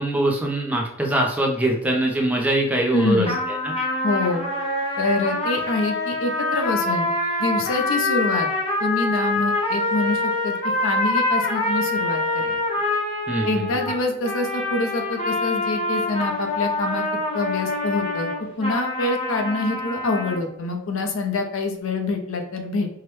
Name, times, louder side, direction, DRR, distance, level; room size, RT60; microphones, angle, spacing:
voice 1, 0.0-3.7 13.3-13.8, right 1 dB, 5° right, 0 dB, 0.5 m, -23 dB
voice 2, 2.9-3.3 4.0-4.4 5.0-7.1 7.4-8.5 8.8-10.5 10.8-12.6 13.4-17.0 17.3-18.3 18.6-22.9, left 2 dB, 80° left, 4 dB, 0.6 m, -25 dB
sound 1, 3.2-20.4, left 2 dB, 25° left, 0.7 m, -25 dB
4.6 x 2.1 x 3.1 m, 0.82 s
head